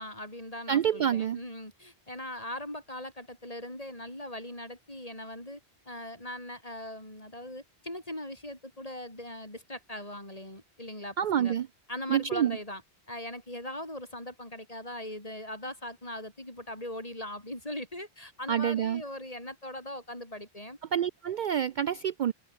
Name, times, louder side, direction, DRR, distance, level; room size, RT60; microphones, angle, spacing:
voice 1, 0.0-5.6 5.9-11.5 11.9-12.8 13.1-20.8, left 1 dB, 35° left, 6.3 m, -40 dB
voice 2, 0.7-1.4 11.2-11.7 12.1-12.6 18.5-19.0 20.9-22.3, right 9 dB, 55° right, 0.6 m, -27 dB
omnidirectional pair, 1.1 m